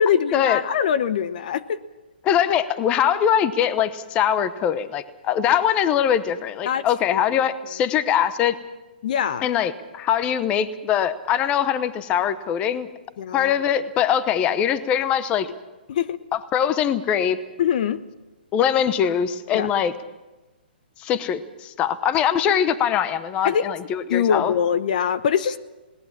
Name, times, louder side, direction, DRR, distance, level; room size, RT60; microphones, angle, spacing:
voice 1, 0.0-1.8 6.6-6.8 7.1-7.2 9.0-9.5 13.2-13.5 15.9-16.2 17.6-18.0 19.5-19.7 23.4-23.7 24.1-25.6, left 8 dB, 50° left, 15 dB, 0.8 m, -23 dB
voice 2, 2.2-8.6 9.4-12.9 13.3-15.5 16.3-17.4 18.5-19.9 21.0-24.5, left 9 dB, 20° left, 14 dB, 0.8 m, -22 dB
20.0 x 18.5 x 7.4 m, 1.1 s
hypercardioid pair, 150°, 6 cm